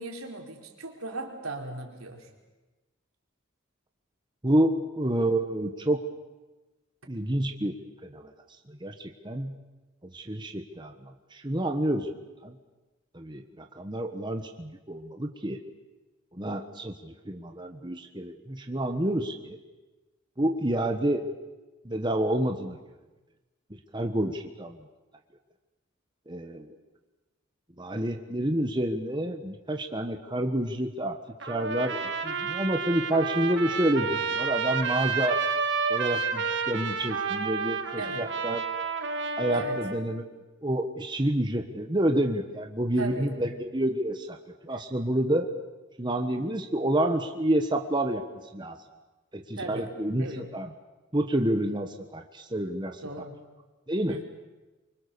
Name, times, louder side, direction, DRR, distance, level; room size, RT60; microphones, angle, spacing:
voice 1, 0.0-2.3 38.0-38.2 39.5-39.8 43.0-43.3 44.7-44.8 49.5-49.9 50.2-50.5 53.0-53.4 54.1-54.2, right 2 dB, 90° right, 1 dB, 4.2 m, -37 dB
voice 2, 4.4-6.0 7.1-7.7 8.0-8.3 8.7-9.6 10.0-12.1 12.4-12.6 13.1-15.6 16.3-19.6 20.4-21.3 21.8-22.8 23.9-24.8 26.3-26.8 27.8-31.2 31.4-35.4 35.9-38.6 39.4-40.3 40.6-44.4 44.6-45.5 46.0-48.2 48.5-48.8 49.3-50.7 51.1-53.0 53.9-54.2, right 1 dB, 20° right, 5 dB, 1.3 m, -29 dB
Trumpet, 31.4-40.0, right 5 dB, 55° right, 2.1 m, -30 dB
26.0 x 24.5 x 7.0 m, 1.1 s
head